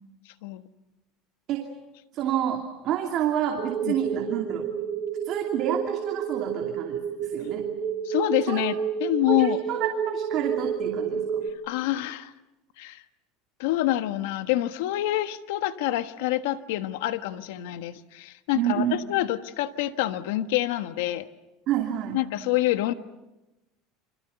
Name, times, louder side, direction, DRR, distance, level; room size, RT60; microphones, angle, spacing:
voice 1, 2.1-4.7 5.2-7.7 8.5-8.6 9.3-11.4 18.5-19.0 21.7-22.2, right 10 dB, 40° right, 2 dB, 2.6 m, -29 dB
sound 1, 3.6-11.5, right 7 dB, 25° right, 1.6 m, -30 dB
voice 2, 8.0-9.6 11.6-12.3 12.8-13.0 13.6-21.3 22.1-22.9, left 14 dB, 85° left, 10 dB, 1.4 m, -27 dB
29.5 x 26.0 x 7.0 m, 0.98 s
cardioid pair, 170°, 0 cm